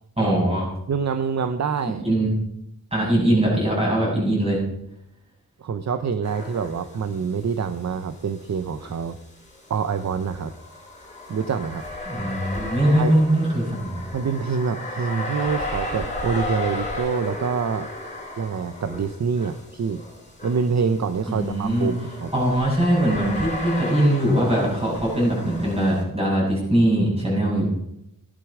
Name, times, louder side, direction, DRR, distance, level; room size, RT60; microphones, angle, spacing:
voice 1, 0.2-0.7 2.0-2.3 2.9-4.6 12.1-14.0 21.3-21.9 22.3-27.7, right 1 dB, 15° right, -4 dB, 7.4 m, -21 dB
voice 2, 0.9-2.1 5.6-9.2 9.7-10.5 11.3-11.8 13.0-13.2 14.1-17.9 18.4-20.0 20.4-22.3, right 6 dB, 50° right, 10 dB, 0.7 m, -26 dB
sound 1, 6.2-7.4 7.6-7.7 8.8-26.0, left 1 dB, 20° left, 3.8 m, -34 dB
16.0 x 11.5 x 4.9 m, 0.81 s
wide cardioid pair, 160°, 36 cm